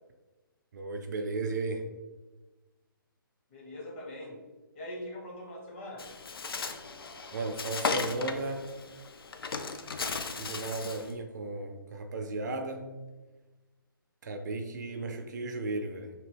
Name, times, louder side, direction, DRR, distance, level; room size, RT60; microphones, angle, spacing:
voice 1, 0.7-1.8 7.3-8.7 10.4-12.9 14.2-16.1, right 2 dB, 50° right, 5 dB, 0.4 m, -35 dB
voice 2, 3.5-4.4 4.7-6.0, left 1 dB, 30° left, -2 dB, 0.7 m, -42 dB
Bird, 6.0-11.1, left 4 dB, 80° left, 0.4 m, -36 dB
2.9 x 2.6 x 3.3 m, 1.2 s
figure-of-eight pair, 140°, 12 cm